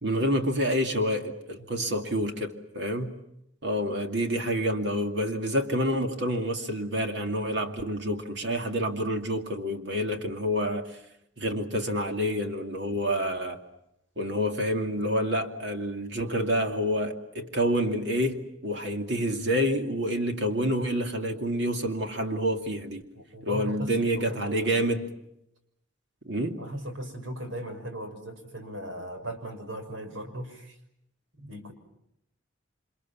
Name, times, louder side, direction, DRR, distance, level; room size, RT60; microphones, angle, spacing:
voice 1, 0.0-3.1 3.6-11.0 11.4-13.6 14.2-23.0 23.4-25.1 26.2-26.6, equal, 60° right, 2.5 m, -28 dB
voice 2, 1.7-2.3 23.1-24.9 26.6-30.7 31.4-31.7, equal, 80° right, 6.3 m, -38 dB
29.0 x 27.0 x 7.3 m
head